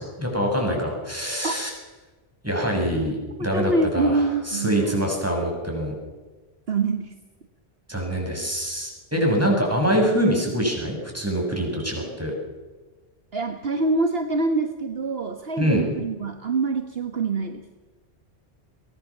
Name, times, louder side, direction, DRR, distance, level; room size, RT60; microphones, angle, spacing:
voice 1, 0.0-1.7 2.4-6.0 7.9-12.3 15.6-15.9, equal, 15° right, 0 dB, 7.3 m, -24 dB
voice 2, 3.5-5.0 6.7-7.1 13.3-17.6, right 3 dB, 60° right, 5 dB, 1.6 m, -25 dB
23.0 x 18.5 x 7.3 m, 1.2 s
omnidirectional pair, 1.1 m